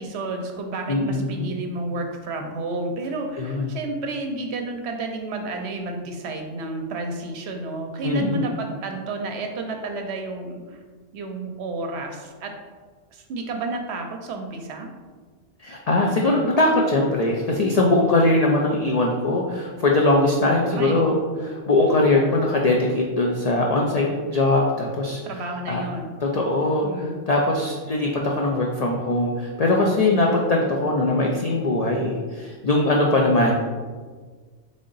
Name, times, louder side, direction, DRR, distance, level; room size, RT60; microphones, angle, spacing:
voice 1, 0.0-10.8 11.1-12.5 13.1-14.9 20.4-21.1 25.2-26.1 26.8-27.2, right 2 dB, 70° right, 4 dB, 0.8 m, -31 dB
voice 2, 0.9-1.5 3.4-3.7 8.0-8.5 15.6-25.2 25.7-25.8 26.2-26.9 27.3-33.5, left 2 dB, 75° left, -1 dB, 0.3 m, -21 dB
3.7 x 3.5 x 3.9 m, 1.5 s
omnidirectional pair, 1.2 m